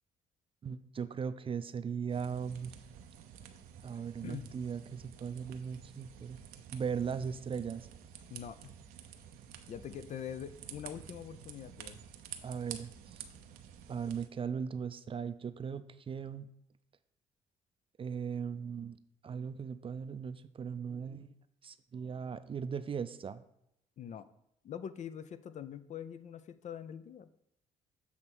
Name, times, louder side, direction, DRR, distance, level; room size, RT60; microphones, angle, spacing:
voice 1, 0.6-2.7 3.8-6.4 6.7-7.9 12.4-13.2 13.9-16.5 18.0-19.0 19.2-21.3 21.6-23.4, right 6 dB, 35° right, 13 dB, 0.5 m, -38 dB
sound 1, 2.1-14.3, right 9 dB, 85° right, 0.6 m, -51 dB
voice 2, 8.3-8.7 9.7-12.0 24.0-24.3 24.6-27.3, left 9 dB, 55° left, 13 dB, 0.5 m, -44 dB
7.2 x 3.3 x 6.1 m, 0.77 s
supercardioid pair, 70°, 15 cm